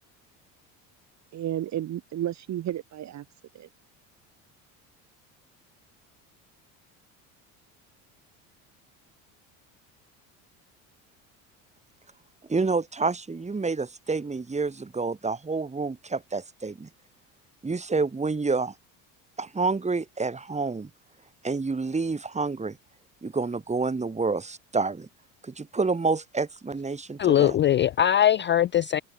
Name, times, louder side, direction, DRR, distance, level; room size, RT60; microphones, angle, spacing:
voice 1, 1.3-3.2 3.5-3.7, right 12 dB, 40° right, 1.0 m, -32 dB
voice 2, 12.5-16.9 17.6-18.7 19.4-20.9 21.4-22.8 23.2-25.1 25.4-27.6, right 4 dB, 15° right, 1.8 m, -28 dB
voice 3, 27.2-29.0, left 11 dB, 30° left, 0.4 m, -21 dB
supercardioid pair, 80°, 41 cm